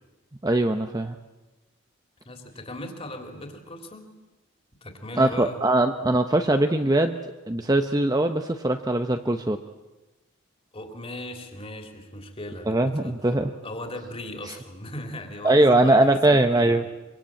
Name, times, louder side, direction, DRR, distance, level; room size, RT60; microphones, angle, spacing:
voice 1, 0.4-1.2 5.2-7.2 7.5-9.6 12.7-13.5 15.4-16.8, right 1 dB, 15° right, 6 dB, 0.8 m, -21 dB
voice 2, 2.2-4.1 4.8-5.6 10.7-13.1 13.6-16.8, left 1 dB, 25° left, 4 dB, 3.2 m, -38 dB
24.5 x 24.0 x 8.9 m, 1.1 s
head